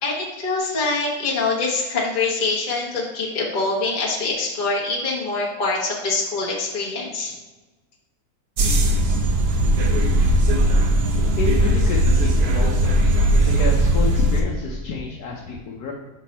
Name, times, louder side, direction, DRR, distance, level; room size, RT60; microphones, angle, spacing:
voice 1, 0.0-7.3, left 3 dB, 35° left, -4 dB, 1.1 m, -24 dB
sound 1, 8.6-14.4, right 1 dB, 55° right, 0.8 m, -18 dB
voice 2, 11.4-13.0 13.4-15.9, left 4 dB, 85° left, -2 dB, 1.4 m, -29 dB
6.2 x 4.2 x 4.2 m, 1.2 s
omnidirectional pair, 1.6 m